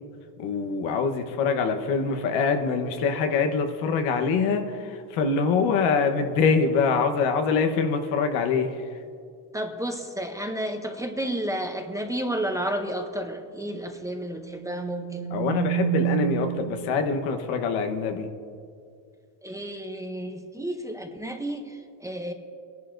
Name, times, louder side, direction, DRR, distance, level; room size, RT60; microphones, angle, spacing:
voice 1, 0.4-8.8 15.3-18.3, left 5 dB, 85° left, 6 dB, 1.2 m, -24 dB
voice 2, 9.5-15.5 19.4-22.3, right 1 dB, 5° right, 4 dB, 0.6 m, -31 dB
sound 1, 14.4-17.0, right 20 dB, 45° right, 0.9 m, -29 dB
24.5 x 11.0 x 2.6 m, 2.3 s
cardioid pair, 130°, 48 cm